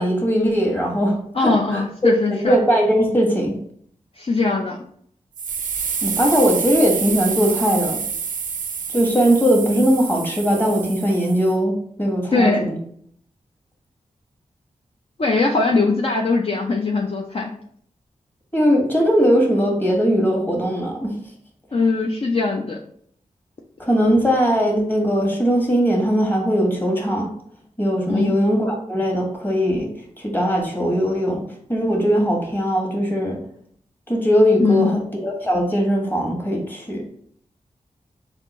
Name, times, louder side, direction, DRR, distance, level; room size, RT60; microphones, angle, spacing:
voice 1, 0.0-3.6 6.0-8.0 8.9-12.8 18.5-21.1 23.8-27.3 27.8-29.9 30.2-31.4 31.7-33.4 34.1-37.0, equal, 15° left, 0 dB, 1.4 m, -20 dB
voice 2, 1.3-2.6 4.2-4.8 12.3-12.7 15.2-17.5 21.7-22.8 28.1-28.4 34.6-34.9, left 3 dB, 45° left, 0 dB, 0.5 m, -20 dB
sound 1, 5.4-11.5, right 6 dB, 85° right, 0.5 m, -28 dB
3.5 x 2.6 x 4.2 m, 0.64 s
cardioid pair, 50°, 13 cm